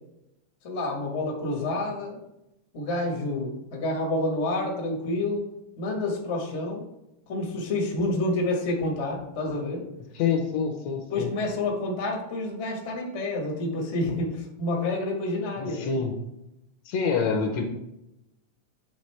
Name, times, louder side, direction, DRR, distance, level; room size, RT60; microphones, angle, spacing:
voice 1, 0.6-2.2 2.7-5.4 5.8-6.8 7.3-9.8 11.1-16.0, left 2 dB, 45° left, -1 dB, 0.9 m, -28 dB
voice 2, 10.1-11.3 15.6-16.2 16.9-17.6, left 5 dB, 75° left, 4 dB, 1.9 m, -26 dB
9.9 x 3.6 x 3.3 m, 0.87 s
omnidirectional pair, 3.3 m